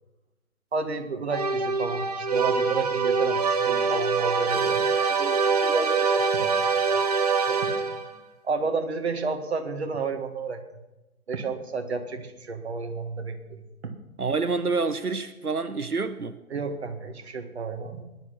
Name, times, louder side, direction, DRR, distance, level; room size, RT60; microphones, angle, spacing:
voice 1, 0.7-7.1 7.5-7.7 8.4-10.6 11.3-14.0 16.5-18.1, right 4 dB, 45° right, 6 dB, 1.9 m, -31 dB
sound 1, 1.3-8.2, right 5 dB, 25° right, 1.0 m, -24 dB
voice 2, 14.2-16.4, right 4 dB, 85° right, 10 dB, 1.0 m, -27 dB
18.5 x 11.0 x 6.1 m, 1.0 s
figure-of-eight pair, 140°, 44 cm